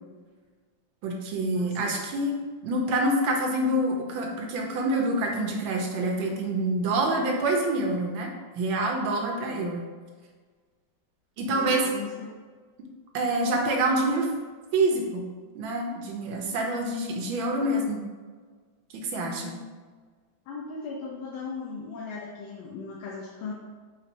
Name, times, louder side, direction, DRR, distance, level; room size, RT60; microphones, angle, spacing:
voice 1, 1.0-2.4 2.6-8.3 8.6-9.9 11.4-11.9 13.1-14.3 14.7-15.3 15.5-18.0 18.9-19.5, right 1 dB, 85° right, 1 dB, 1.5 m, -26 dB
voice 2, 1.5-2.0 9.3-9.7 11.5-12.3 19.2-19.6 20.5-23.5, left 4 dB, 85° left, -3 dB, 1.4 m, -38 dB
4.8 x 2.6 x 4.1 m, 1.5 s
omnidirectional pair, 2.1 m